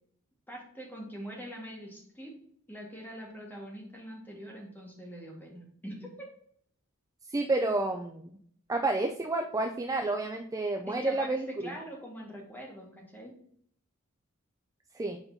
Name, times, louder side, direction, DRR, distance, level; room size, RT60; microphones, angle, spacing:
voice 1, 0.5-2.3 2.7-6.3 10.9-13.3, equal, 10° left, -1 dB, 1.6 m, -43 dB
voice 2, 7.2-8.3 8.7-11.7 14.9-15.2, right 2 dB, 15° right, 4 dB, 0.3 m, -30 dB
7.0 x 5.2 x 2.7 m, 0.65 s
head